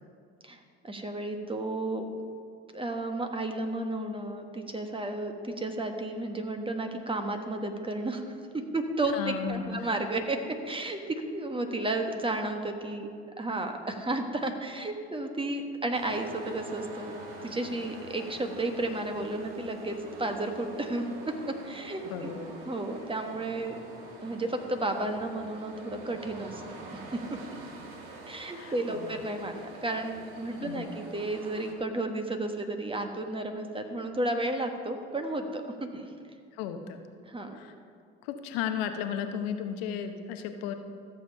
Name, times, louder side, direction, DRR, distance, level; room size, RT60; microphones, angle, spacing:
voice 1, 0.8-2.1 2.7-8.2 8.7-10.4 10.6-13.1 13.4-17.1 17.4-21.0 21.6-22.4 22.7-23.7 24.2-26.6 26.9-27.0 27.3-27.4 28.3-36.1 37.3-37.6, right 2 dB, 15° right, 5 dB, 1.4 m, -32 dB
voice 2, 9.1-9.9 22.0-22.6 28.5-29.2 30.6-30.9 36.5-37.1 37.5-37.7 38.2-40.7, left 8 dB, 70° left, 7 dB, 0.9 m, -35 dB
sound 1, 15.9-31.7, right 3 dB, 75° right, 1.6 m, -45 dB
13.5 x 7.2 x 5.5 m, 2.3 s
hypercardioid pair, 65°, 31 cm